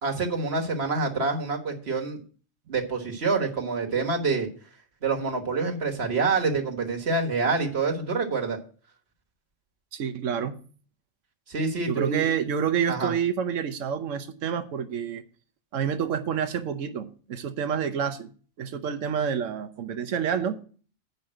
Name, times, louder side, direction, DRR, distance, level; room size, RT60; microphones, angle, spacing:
voice 1, 0.0-2.2 2.7-4.5 5.0-8.6 11.5-12.3 12.9-13.1, right 4 dB, 55° right, 1.7 m, -27 dB
voice 2, 9.9-10.6 11.9-15.2 15.7-18.3 18.6-20.6, right 7 dB, 75° right, 1.2 m, -28 dB
8.1 x 5.3 x 7.6 m
omnidirectional pair, 1.3 m